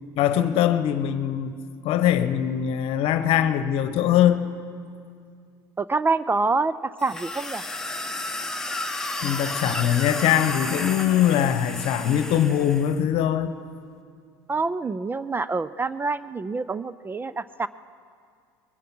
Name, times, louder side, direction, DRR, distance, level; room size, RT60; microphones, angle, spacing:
voice 1, 0.2-4.5 9.2-13.5, left 10 dB, 60° left, 11 dB, 1.0 m, -22 dB
voice 2, 5.8-7.6 14.5-17.7, right 3 dB, 20° right, 16 dB, 0.4 m, -26 dB
sound 1, 7.0-12.9, left 2 dB, 5° left, 1.3 m, -32 dB
21.5 x 11.0 x 6.0 m, 2.3 s
hypercardioid pair, 85°, 11 cm